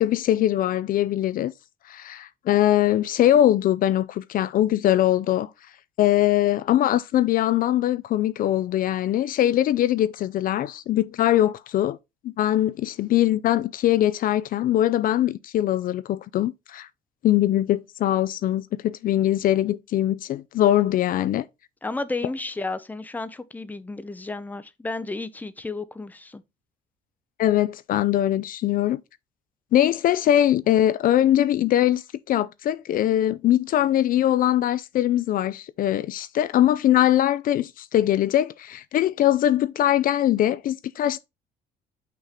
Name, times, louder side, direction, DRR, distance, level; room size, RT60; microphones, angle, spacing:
voice 1, 0.0-1.5 1.9-5.5 6.0-12.0 12.2-16.9 17.2-21.5 27.4-29.0 29.7-41.2, left 12 dB, 55° left, 0.4 m, -22 dB
voice 2, 21.8-26.4, left 3 dB, 10° left, 0.6 m, -32 dB
5.9 x 3.7 x 4.3 m
cardioid pair, 110°, 17 cm